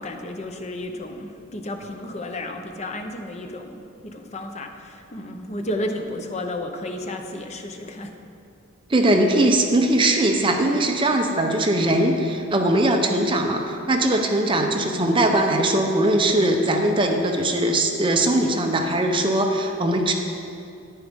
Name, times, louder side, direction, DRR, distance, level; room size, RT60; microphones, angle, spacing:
voice 1, 0.0-8.1, left 1 dB, 35° left, 4 dB, 0.7 m, -32 dB
voice 2, 8.9-20.1, right 1 dB, 25° right, 3 dB, 0.7 m, -20 dB
9.9 x 9.5 x 3.6 m, 2.6 s
head